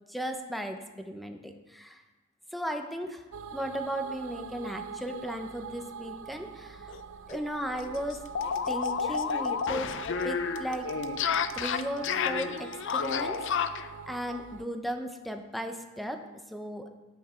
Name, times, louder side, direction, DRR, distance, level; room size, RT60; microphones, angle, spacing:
voice 1, 0.1-2.0 2.5-3.2 3.5-7.0 7.3-8.3 8.7-10.0 10.2-10.9 11.5-13.4 14.0-16.9, equal, ahead, 5 dB, 0.7 m, -36 dB
sound 1, 3.3-14.7, right 7 dB, 65° right, 0.5 m, -43 dB
sound 2, 6.9-7.0 7.3-7.4 7.7-13.9, left 6 dB, 60° left, 0.5 m, -31 dB
12.5 x 9.0 x 4.4 m, 1.2 s
head